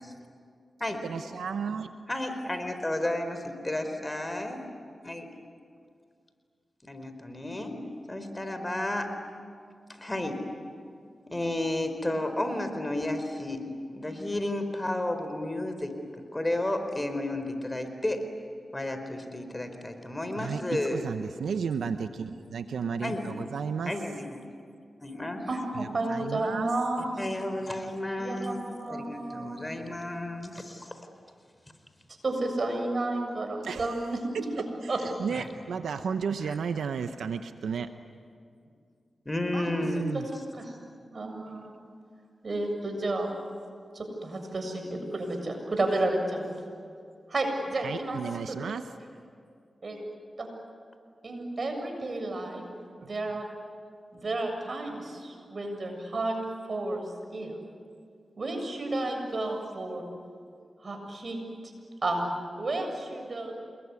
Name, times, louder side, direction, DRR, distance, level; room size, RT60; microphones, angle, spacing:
voice 1, 1.0-1.9 20.4-23.9 25.7-26.7 33.6-33.9 34.3-37.9 39.8-40.3 47.8-48.9 53.0-53.1, right 6 dB, 90° right, 9 dB, 0.8 m, -33 dB
voice 2, 2.1-4.6 5.0-5.3 6.8-7.8 8.1-9.1 9.9-10.4 11.3-13.7 13.9-18.2 18.7-21.0 23.0-23.2 23.9-24.4 25.0-25.4 27.2-28.6 28.9-31.1 35.3-35.5 36.5-36.6 39.2-40.0, left 1 dB, 25° left, 7 dB, 4.5 m, -32 dB
voice 3, 25.5-27.1 28.2-28.4 28.8-29.7 32.2-34.2 34.9-35.0 39.5-40.0 40.3-40.8 41.1-41.7 42.4-43.3 43.9-46.5 47.3-48.2 48.5-48.6 49.8-50.0 50.4-50.5 51.2-52.6 53.0-53.4 54.1-56.4 56.7-57.6 58.4-60.0 60.8-61.4 62.0-62.2 62.6-63.5, right 2 dB, 55° right, 4 dB, 7.3 m, -31 dB
28.0 x 22.0 x 9.8 m, 2.2 s
cardioid pair, 45°, 0 cm